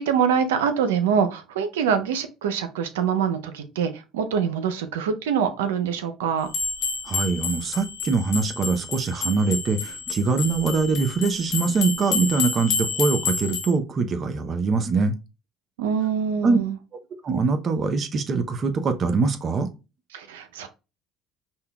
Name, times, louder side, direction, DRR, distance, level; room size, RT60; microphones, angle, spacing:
voice 1, 0.0-6.5 15.8-16.7 20.1-20.7, right 7 dB, 90° right, 0.5 m, -24 dB
sound 1, 6.5-13.7, left 5 dB, 65° left, 1.1 m, -29 dB
voice 2, 7.1-15.1 16.4-16.6 17.2-19.7, right 4 dB, 45° right, 0.6 m, -23 dB
5.4 x 2.2 x 2.2 m
hypercardioid pair, 75°, 0 cm